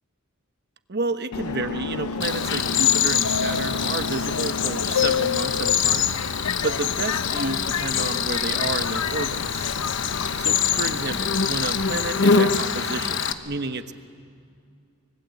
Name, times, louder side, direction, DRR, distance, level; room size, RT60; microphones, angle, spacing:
voice 1, 0.9-6.2 6.6-9.7 10.4-13.9, right 3 dB, 50° right, 9 dB, 1.1 m, -30 dB
Subway metro underground, 1.3-12.1, left 5 dB, 90° left, 0.6 m, -30 dB
Cricket, 2.2-13.3, left 7 dB, 55° left, 1.1 m, -24 dB
25.5 x 24.5 x 8.4 m, 2.3 s
head